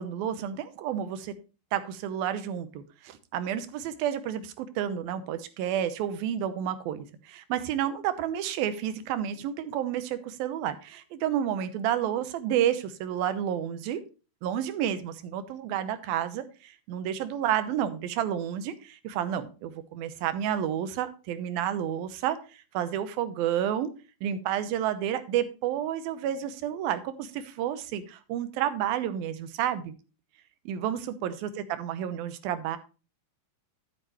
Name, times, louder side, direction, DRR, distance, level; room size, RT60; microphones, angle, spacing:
voice 1, 0.0-1.3 1.7-14.0 14.4-22.4 22.7-23.9 24.2-29.9 30.7-31.5 31.8-32.8, right 10 dB, 85° right, 11 dB, 2.7 m, -30 dB
11.0 x 9.1 x 3.1 m, 0.33 s
omnidirectional pair, 4.2 m